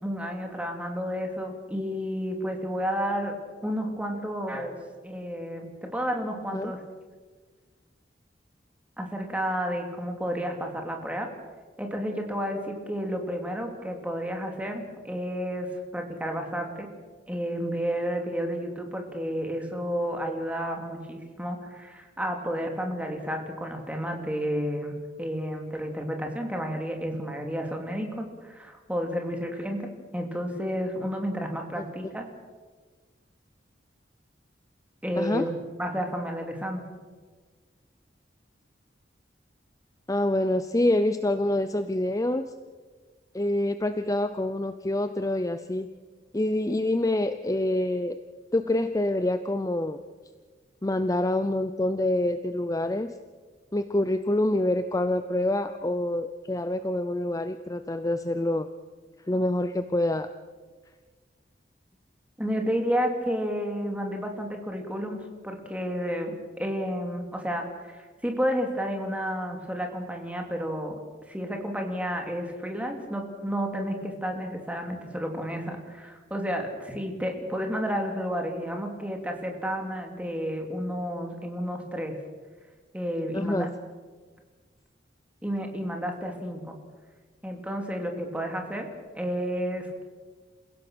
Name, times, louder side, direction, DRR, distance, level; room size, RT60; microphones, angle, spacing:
voice 1, 0.0-3.3 3.6-4.8 5.0-6.8 9.0-11.3 11.8-16.9 17.3-29.9 30.1-32.3 35.0-35.5 35.8-36.8 62.4-71.0 71.3-82.2 82.9-83.7 85.4-86.7 87.4-88.9 89.1-90.0, equal, 10° right, 3 dB, 2.7 m, -31 dB
voice 2, 35.2-35.5 40.1-42.5 43.3-45.9 46.3-48.2 48.5-50.0 50.8-53.1 53.7-58.7 59.3-60.3 83.3-83.7, left 1 dB, 20° left, 10 dB, 0.6 m, -26 dB
28.0 x 16.5 x 6.3 m, 1.4 s
head